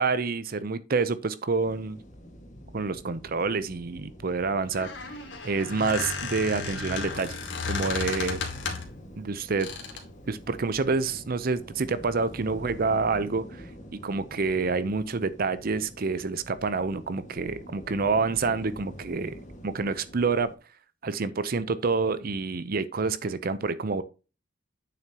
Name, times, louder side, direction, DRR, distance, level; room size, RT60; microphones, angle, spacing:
voice 1, 0.0-2.0 2.7-5.1 5.4-7.3 7.6-8.4 9.2-9.7 10.3-13.7 14.0-19.3 19.6-20.5 21.0-24.0, right 4 dB, 50° right, 0.6 m, -28 dB
sound 1, 1.6-20.6, equal, 40° left, 1.7 m, -46 dB
Squeak, 4.6-9.0 9.6-10.1, left 4 dB, 90° left, 2.3 m, -34 dB
9.1 x 7.1 x 2.9 m
head